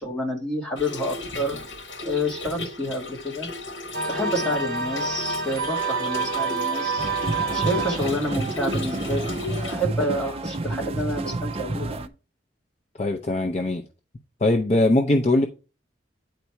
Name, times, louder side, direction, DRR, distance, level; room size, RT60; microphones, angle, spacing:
voice 1, 0.0-1.6 2.1-3.5 4.1-7.1 7.5-12.1, left 1 dB, 5° left, 1.9 m, -29 dB
Trickle dribble / Fill (with liquid), 0.8-9.8, left 2 dB, 75° left, 1.4 m, -36 dB
sound 1, 3.9-8.2, right 4 dB, 50° right, 1.3 m, -28 dB
sound 2, 7.0-12.1, right 2 dB, 30° right, 0.4 m, -29 dB
voice 2, 13.0-13.8 14.4-15.5, left 2 dB, 35° left, 0.6 m, -21 dB
9.1 x 4.1 x 4.6 m
head